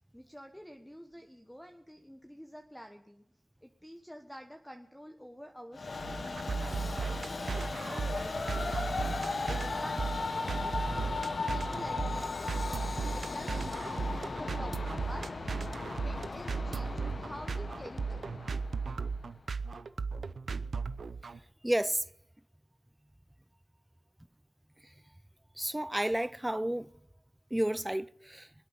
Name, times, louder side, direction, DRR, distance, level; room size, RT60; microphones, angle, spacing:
voice 1, 0.1-3.2 3.6-15.3 16.0-18.4, equal, 5° left, 1.3 m, -49 dB
Train, 5.7-19.2, left 3 dB, 60° left, 1.0 m, -37 dB
sound 1, 6.0-21.4, right 4 dB, 70° right, 0.6 m, -36 dB
voice 2, 21.6-22.0 25.6-26.9 27.5-28.5, right 1 dB, 15° right, 0.4 m, -31 dB
25.0 x 8.4 x 5.6 m
cardioid pair, 40°, 0 cm